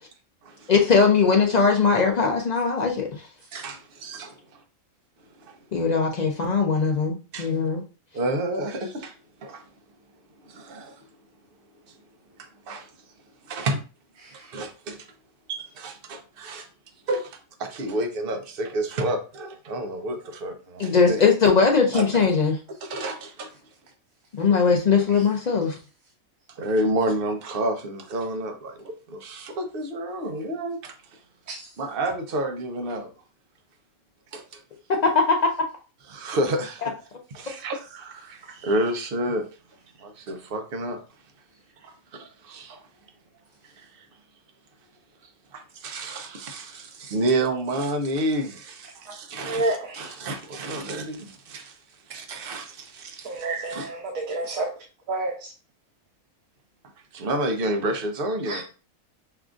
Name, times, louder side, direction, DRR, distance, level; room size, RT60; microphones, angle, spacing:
voice 1, 0.7-3.1 5.7-7.8 20.8-22.6 24.4-25.8 34.9-35.4 36.8-36.9, left 5 dB, 65° left, 0.4 m, -20 dB
voice 2, 3.5-4.4 5.4-5.5 7.3-7.5 8.1-9.1 9.4-9.6 10.4-11.1 12.4-12.9 13.4-13.8 14.3-15.1 15.5-16.7 17.1-21.2 21.9-22.2 22.8-23.5 26.6-31.0 31.8-33.1 34.3-34.6 36.1-37.0 37.3-39.5 40.0-41.0 41.8-42.8 43.6-44.1 45.5-51.8 52.1-53.9 57.1-58.6, right 1 dB, 50° right, 0.8 m, -30 dB
voice 3, 49.4-50.1 53.2-54.7 55.1-55.5 58.5-58.6, right 2 dB, 85° right, 1.1 m, -29 dB
5.7 x 2.5 x 2.3 m
omnidirectional pair, 1.4 m